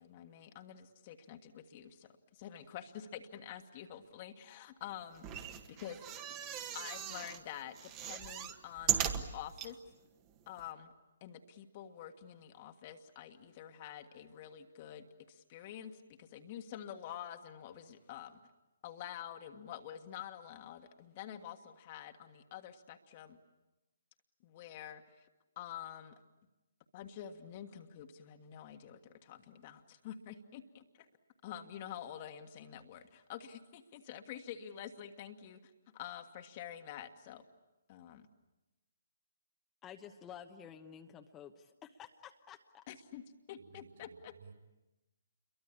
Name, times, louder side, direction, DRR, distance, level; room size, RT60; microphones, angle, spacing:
voice 1, 0.0-5.4 5.7-6.0 6.7-9.8 10.5-10.9 11.2-18.4 18.8-23.4 24.4-25.3 25.5-26.1 26.9-31.1 31.4-37.4 37.9-38.2 42.9-44.4, left 10 dB, 35° left, 5 dB, 1.6 m, -48 dB
sound 1, 5.2-7.4 7.8-9.7 10.3-10.4 10.6-10.7, right 9 dB, 25° right, 1.7 m, -37 dB
voice 2, 39.8-42.8, left 8 dB, 15° left, 5 dB, 1.1 m, -52 dB
voice 3, 43.6-44.5, right 6 dB, 50° right, 6 dB, 6.7 m, -58 dB
29.0 x 23.0 x 8.6 m, 1.0 s
figure-of-eight pair, 135°, 0 cm